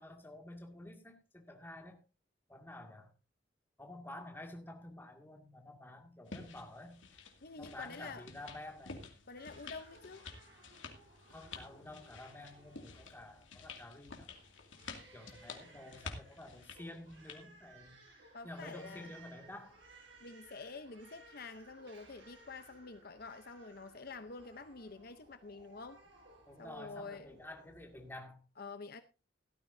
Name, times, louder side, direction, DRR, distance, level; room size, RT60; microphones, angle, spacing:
voice 1, 0.0-2.0 2.5-3.1 3.8-7.0 7.6-9.1 11.3-14.3 15.1-18.0 18.4-19.8 26.5-28.4, left 1 dB, 10° left, 2.2 m, -50 dB
sound 1, 6.3-17.4, left 4 dB, 85° left, 2.4 m, -51 dB
voice 2, 7.4-8.3 9.3-10.2 18.3-19.1 20.2-26.0 26.6-27.4 28.6-29.0, left 4 dB, 55° left, 0.8 m, -48 dB
Crying sobbing, 9.4-28.2, right 2 dB, 75° right, 7.7 m, -61 dB
16.5 x 13.0 x 2.7 m
head